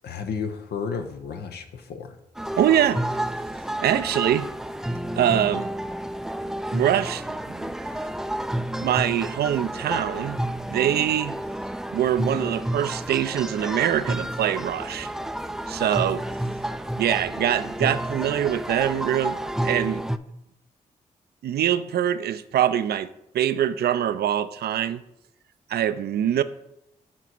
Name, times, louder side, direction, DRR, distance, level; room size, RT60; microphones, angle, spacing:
voice 1, 0.0-2.2, left 6 dB, 75° left, 7 dB, 0.6 m, -32 dB
sound 1, 2.4-20.2, right 1 dB, 5° right, 0.3 m, -30 dB
voice 2, 2.6-3.0 3.8-4.5 5.2-5.7 6.7-7.7 8.8-10.4 10.7-11.4 11.9-15.1 15.7-16.2 17.0-20.0 21.4-23.1 23.3-25.0 25.7-26.4, right 10 dB, 70° right, 13 dB, 0.4 m, -24 dB
7.2 x 2.9 x 5.9 m, 0.84 s
supercardioid pair, 40°, 17 cm